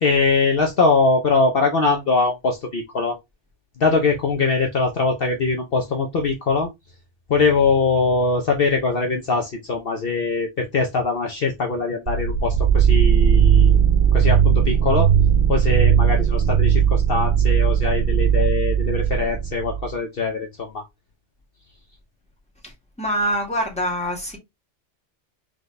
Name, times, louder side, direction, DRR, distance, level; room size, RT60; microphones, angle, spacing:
voice 1, 0.0-3.2 3.8-6.7 7.3-13.8 14.1-15.1 15.5-20.8, left 4 dB, 55° left, 1.0 m, -22 dB
sound 1, 12.1-19.9, right 8 dB, 55° right, 0.8 m, -17 dB
voice 2, 23.0-24.4, equal, 5° left, 1.7 m, -24 dB
3.9 x 3.4 x 3.2 m
omnidirectional pair, 1.2 m